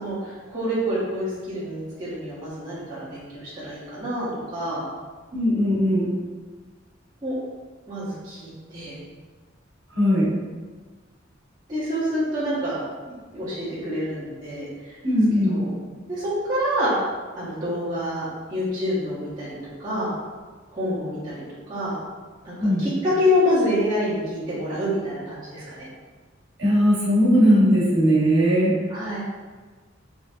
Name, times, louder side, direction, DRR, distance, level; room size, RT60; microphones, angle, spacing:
voice 1, 0.0-4.9 7.2-7.3 7.9-9.0 11.7-14.9 15.4-15.7 16.1-17.0 17.3-20.1 20.7-22.0 22.4-25.9 28.9-29.2, left 1 dB, 20° right, -11 dB, 1.0 m, -27 dB
voice 2, 5.3-6.1 9.9-10.3 15.0-15.6 22.6-22.8 26.6-28.7, equal, 65° right, -8 dB, 1.5 m, -19 dB
3.7 x 2.7 x 2.7 m, 1.4 s
head